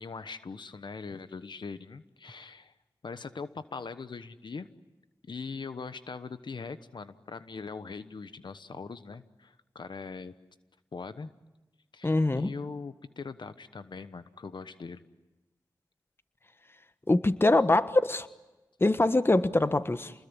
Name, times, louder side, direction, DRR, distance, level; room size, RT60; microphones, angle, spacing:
voice 1, 0.0-2.7 3.0-4.7 5.3-10.3 10.9-11.3 11.9-15.0 18.9-19.0, left 4 dB, 70° left, 12 dB, 1.1 m, -41 dB
voice 2, 12.0-12.5 17.1-18.3 18.8-20.1, left 2 dB, 30° left, 12 dB, 1.4 m, -23 dB
28.0 x 21.0 x 9.9 m, 1.1 s
cardioid pair, 50°, 8 cm